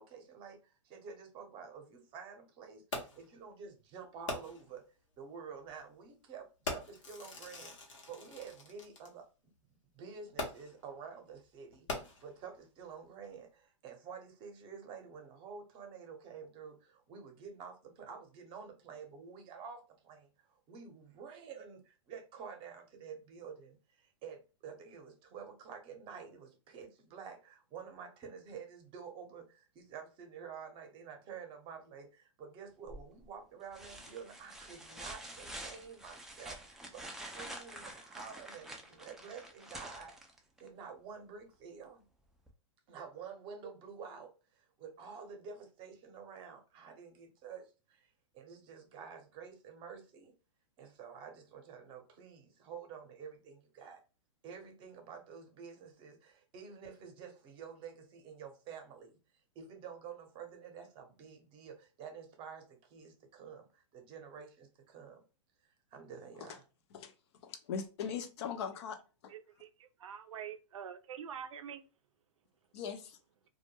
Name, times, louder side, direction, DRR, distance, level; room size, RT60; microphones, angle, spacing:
voice 1, 0.0-4.8 5.2-7.8 8.1-9.5 9.9-40.2 40.6-42.0 42.9-50.3 50.8-54.0 54.4-59.1 59.5-65.2 65.9-66.6, right 6 dB, 30° right, 0.7 m, -49 dB
Fireworks, 2.9-3.3 4.3-4.8 5.7-5.8 6.6-9.1 10.4-10.9 11.7-12.5 13.2-13.3, left 2 dB, 75° left, 0.9 m, -42 dB
sound 1, 32.9-33.3 33.7-40.7 42.5-42.6, right 1 dB, ahead, 0.3 m, -48 dB
voice 2, 67.4-69.0 69.2-69.3 72.7-73.2, left 7 dB, 55° left, 0.5 m, -40 dB
voice 3, 69.3-71.8, right 8 dB, 80° right, 0.4 m, -46 dB
2.2 x 2.1 x 2.9 m
hypercardioid pair, 125°, 16 cm